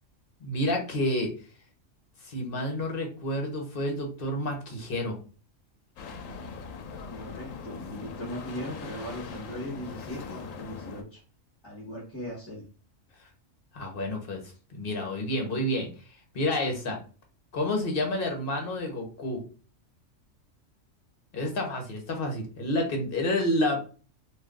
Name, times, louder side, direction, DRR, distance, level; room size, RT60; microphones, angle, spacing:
voice 1, 0.4-1.3 2.2-5.2 13.7-14.4 14.7-15.9 16.3-17.0 17.5-19.4 21.3-23.8, left 1 dB, 50° left, 2 dB, 1.0 m, -29 dB
sound 1, 6.0-11.0, left 5 dB, 90° left, 1.0 m, -41 dB
voice 2, 7.1-11.2 11.6-12.6, equal, 20° left, -5 dB, 1.1 m, -39 dB
2.6 x 2.5 x 3.5 m, 0.37 s
omnidirectional pair, 1.3 m